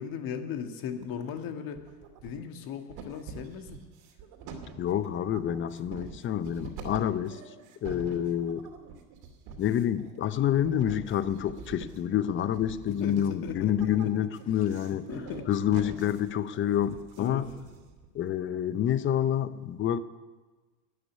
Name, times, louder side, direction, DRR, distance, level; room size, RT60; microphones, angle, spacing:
voice 1, 0.0-1.8 2.2-3.8 7.9-8.2 13.0-14.1 15.1-15.5 17.2-17.5, left 7 dB, 45° left, 6 dB, 1.8 m, -37 dB
sound 1, 0.9-1.4 1.7-2.6 2.9-18.1, right 5 dB, 50° right, 2.7 m, -46 dB
voice 2, 4.8-7.4 7.8-8.7 9.6-15.0 15.5-17.5 18.1-20.0, left 10 dB, 25° left, 15 dB, 0.6 m, -28 dB
12.5 x 9.1 x 9.7 m, 1.3 s
supercardioid pair, 115°, 48 cm